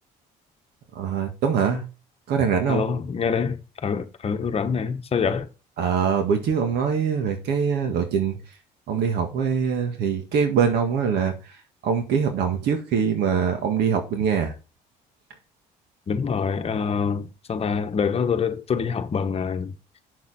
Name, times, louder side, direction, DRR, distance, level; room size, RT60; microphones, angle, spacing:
voice 1, 1.0-1.8 2.3-2.9 5.8-8.4 8.9-11.3 11.8-14.5, right 6 dB, 75° right, 1.7 m, -23 dB
voice 2, 2.7-5.5 16.1-19.7, left 6 dB, 35° left, 1.1 m, -25 dB
7.1 x 6.8 x 4.1 m
cardioid pair, 110°, 17 cm